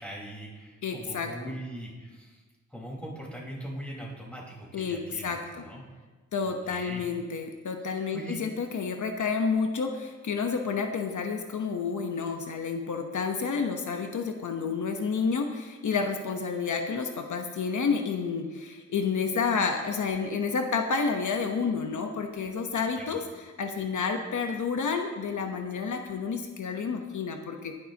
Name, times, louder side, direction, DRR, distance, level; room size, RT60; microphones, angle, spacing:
voice 1, 0.0-2.4 2.7-5.8 6.4-7.0 7.9-8.4 22.9-23.2, right 1 dB, 5° left, -4 dB, 4.4 m, -41 dB
voice 2, 0.8-1.5 4.7-5.0 5.2-5.4 6.3-9.9 10.3-15.5 15.8-18.4 18.9-23.2 23.6-27.6, left 5 dB, 75° left, 4 dB, 1.0 m, -29 dB
19.5 x 11.5 x 2.9 m, 1.4 s
wide cardioid pair, 95°, 30 cm